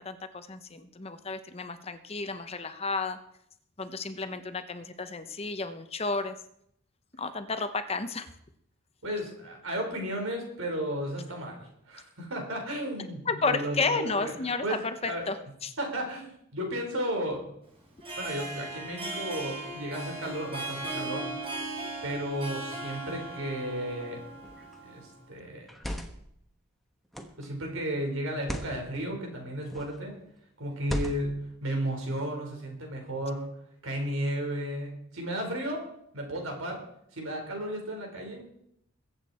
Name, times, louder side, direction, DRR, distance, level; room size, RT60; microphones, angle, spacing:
voice 1, 0.0-3.2 3.8-6.4 7.2-8.3 13.3-15.7, left 4 dB, 30° left, 10 dB, 0.8 m, -32 dB
voice 2, 9.0-14.3 14.6-14.8 15.0-15.3 15.8-17.4 18.2-21.3 22.0-24.2 24.8-25.7 27.4-30.2 30.6-33.5 33.8-35.8 36.1-36.8 37.1-38.6, right 1 dB, 85° right, 1 dB, 4.4 m, -34 dB
Harp, 17.9-25.2, right 2 dB, 30° right, 3.7 m, -38 dB
sound 1, 24.4-24.8 25.6-26.3 27.1-27.5 28.3-28.8 29.6-30.0 30.8-31.4, equal, ahead, 1.2 m, -36 dB
22.0 x 8.2 x 4.3 m, 0.74 s
head